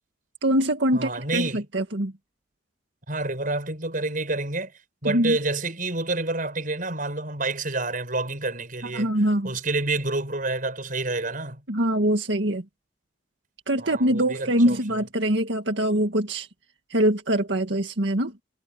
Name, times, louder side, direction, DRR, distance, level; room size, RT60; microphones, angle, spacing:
voice 1, 0.4-2.1 5.1-5.4 8.9-9.5 11.7-12.6 13.7-16.5 16.9-18.3, right 1 dB, 80° right, 1.9 m, -23 dB
voice 2, 0.9-1.6 3.1-4.7 5.0-9.1 9.4-11.6 13.8-14.8, right 2 dB, 50° right, 6.7 m, -28 dB
head